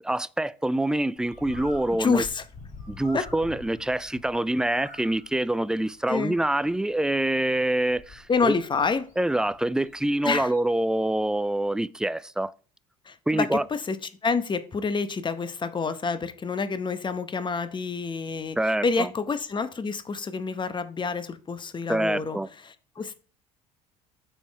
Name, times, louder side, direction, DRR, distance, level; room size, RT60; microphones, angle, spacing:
voice 1, 0.0-2.2 2.9-8.6 9.2-12.5 13.3-13.6 18.6-19.1 21.9-22.5, right 1 dB, 5° right, 0.3 m, -26 dB
Bird, 1.2-10.7, left 3 dB, 40° left, 2.0 m, -48 dB
voice 2, 2.0-2.4 3.1-3.3 6.1-6.4 8.3-9.1 10.2-10.5 13.1-14.0 14.2-22.4 22.6-23.1, left 5 dB, 25° left, 0.9 m, -28 dB
6.8 x 4.4 x 4.7 m
hypercardioid pair, 60°, 19 cm